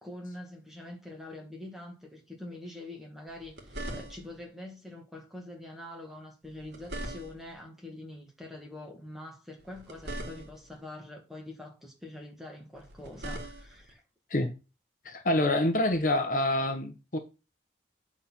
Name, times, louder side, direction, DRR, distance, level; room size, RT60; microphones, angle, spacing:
voice 1, 0.0-14.0, left 1 dB, ahead, 1.9 m, -45 dB
sound 1, 3.3-4.5 6.4-7.6 9.6-10.8 12.8-13.9 15.9-16.1, right 1 dB, 70° right, 2.2 m, -41 dB
voice 2, 15.0-17.2, left 1 dB, 45° left, 0.9 m, -27 dB
8.5 x 4.2 x 5.8 m
head